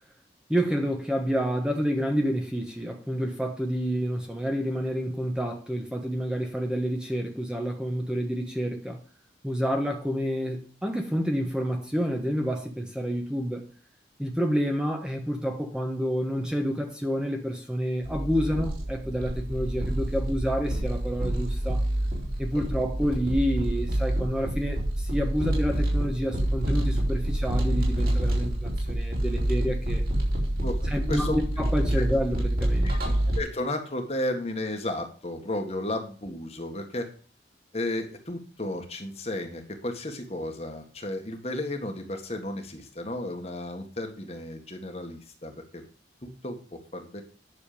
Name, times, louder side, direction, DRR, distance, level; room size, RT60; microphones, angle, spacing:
voice 1, 0.5-9.0 9.4-13.7 14.2-21.8 22.4-30.0 30.9-32.9, equal, 5° right, 1.3 m, -29 dB
sound 1, 18.0-33.4, right 1 dB, 50° right, 4.3 m, -27 dB
voice 2, 30.6-31.4 32.0-32.1 32.8-33.0 33.2-37.1 37.7-45.8 46.2-47.2, left 1 dB, 35° left, 1.8 m, -33 dB
10.0 x 6.9 x 5.1 m
head